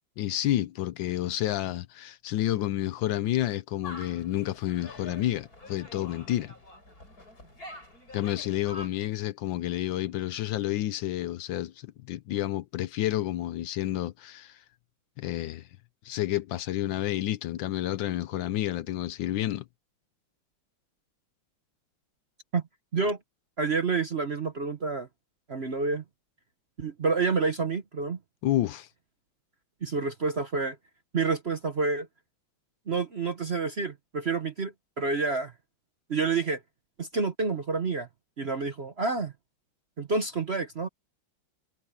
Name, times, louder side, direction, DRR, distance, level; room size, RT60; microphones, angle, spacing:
voice 1, 0.2-6.5 8.1-14.6 15.2-15.7 16.0-19.6 28.4-28.9, left 14 dB, 70° left, 1.3 m, -30 dB
sound 1, 3.8-8.9, left 2 dB, 45° left, 8.5 m, -46 dB
voice 2, 23.6-25.1 25.5-26.0 26.8-28.2 29.8-30.8 31.1-32.1 32.9-35.5 36.1-36.6 37.0-38.1 38.4-39.3 40.0-40.9, right 4 dB, 45° right, 0.9 m, -28 dB
omnidirectional pair, 2.3 m